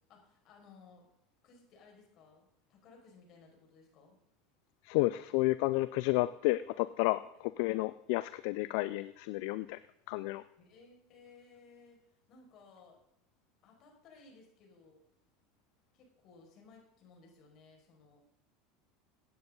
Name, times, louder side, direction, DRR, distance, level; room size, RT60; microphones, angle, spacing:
voice 1, 0.1-1.1 1.4-4.2 7.3-7.4 10.6-12.0 12.3-13.0 13.6-15.0 15.9-18.2, left 4 dB, 50° left, 1 dB, 5.6 m, -59 dB
voice 2, 4.8-7.2 7.6-9.8 10.1-10.4, left 19 dB, 70° left, 15 dB, 0.4 m, -31 dB
16.0 x 9.5 x 3.9 m, 0.78 s
hypercardioid pair, 100°, 0 cm